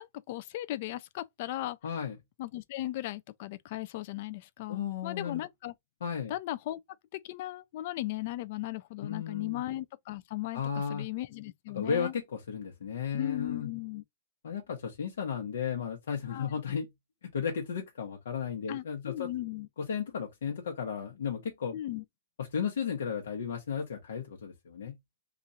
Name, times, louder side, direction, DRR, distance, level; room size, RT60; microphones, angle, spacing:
voice 1, 0.0-1.8 2.4-5.7 6.3-6.8 7.1-12.1 13.1-14.0 16.3-16.5 18.7-19.7 21.7-22.0, left 15 dB, 45° left, 0.4 m, -37 dB
voice 2, 1.8-2.2 4.7-5.4 6.0-6.3 9.0-9.6 10.5-11.1 11.7-13.7 14.4-16.9 17.2-19.3 19.8-21.8 22.4-25.0, left 7 dB, 85° left, 1.0 m, -34 dB
3.0 x 2.4 x 4.0 m
hypercardioid pair, 160°, 0 cm